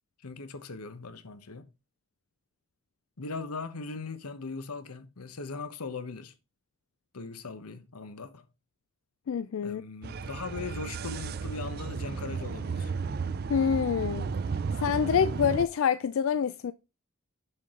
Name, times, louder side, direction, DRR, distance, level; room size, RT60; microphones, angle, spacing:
voice 1, 0.2-1.7 3.2-6.3 7.1-8.5 9.6-12.9, left 4 dB, 90° left, 1.0 m, -39 dB
voice 2, 9.3-9.8 13.5-14.3 14.8-16.7, left 7 dB, 65° left, 0.3 m, -26 dB
sound 1, 10.0-15.7, right 5 dB, 45° right, 0.4 m, -33 dB
6.8 x 6.7 x 3.7 m
head